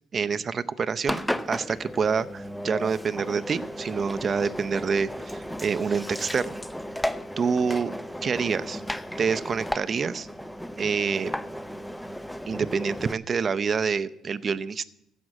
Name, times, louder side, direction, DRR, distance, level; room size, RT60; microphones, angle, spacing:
voice 1, 0.1-6.6 7.4-7.9 8.2-8.8 9.2-10.3 10.8-11.3 12.5-14.8, right 5 dB, 40° right, 14 dB, 0.6 m, -27 dB
Engine, 1.0-13.1, equal, 5° left, 0.7 m, -34 dB
16.0 x 6.2 x 8.7 m, 0.82 s
cardioid pair, 100°, 0 cm